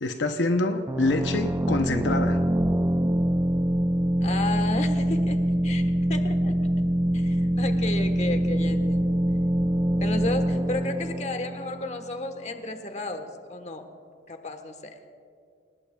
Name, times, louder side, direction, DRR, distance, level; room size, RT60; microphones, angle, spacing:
voice 1, 0.0-2.4, left 2 dB, 75° left, 6 dB, 0.8 m, -26 dB
sound 1, 0.9-12.4, right 1 dB, 15° right, 0.4 m, -24 dB
voice 2, 4.2-5.8 6.1-6.5 7.1-9.1 10.0-13.9 14.3-14.9, left 2 dB, 40° left, 6 dB, 1.3 m, -33 dB
28.5 x 19.0 x 2.3 m, 2.2 s
head